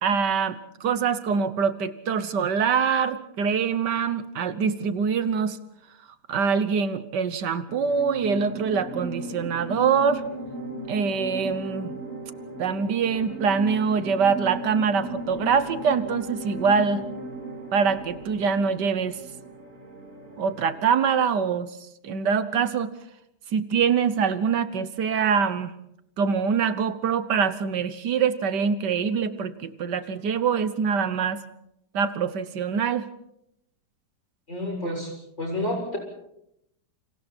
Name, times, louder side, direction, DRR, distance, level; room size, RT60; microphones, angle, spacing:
voice 1, 0.0-5.6 6.3-10.2 10.9-11.9 12.6-17.0 17.7-19.2 20.4-21.8 22.0-22.9 23.5-25.7 26.2-31.4 31.9-33.1, right 6 dB, 75° right, 12 dB, 1.7 m, -24 dB
sound 1, 7.7-21.0, right 1 dB, 45° right, 3.2 m, -37 dB
voice 2, 34.5-35.1 35.4-36.0, left 1 dB, 40° left, 1 dB, 7.4 m, -29 dB
29.0 x 27.0 x 4.4 m, 0.80 s
omnidirectional pair, 1.9 m